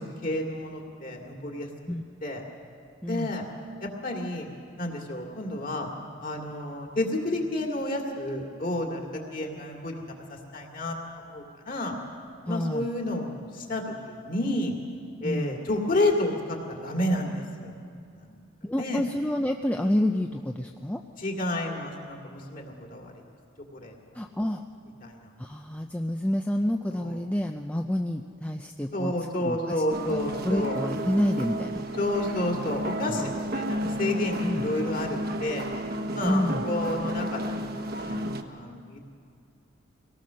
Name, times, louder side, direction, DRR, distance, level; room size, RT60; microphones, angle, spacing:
voice 1, 0.0-1.7 2.2-2.4 3.0-3.4 3.8-4.5 4.8-5.9 6.2-10.0 10.3-11.0 11.3-11.9 12.5-14.8 15.2-17.7 18.1-18.4 18.8-19.0 21.2-23.1 23.7-23.9 25.0-25.3 26.9-27.2 28.9-30.8 31.9-35.7 36.1-39.0, left 1 dB, 40° left, 1 dB, 2.5 m, -30 dB
voice 2, 3.0-3.3 12.5-12.9 15.2-15.6 18.6-21.0 24.1-24.6 25.4-29.1 29.4-29.6 30.1-30.2 30.4-31.8 33.1-33.2 34.4-34.6 36.2-36.6, left 1 dB, 5° left, 3 dB, 0.4 m, -28 dB
sound 1, 29.9-38.4, equal, 45° right, 1.0 m, -32 dB
24.0 x 18.0 x 6.4 m, 2.3 s
head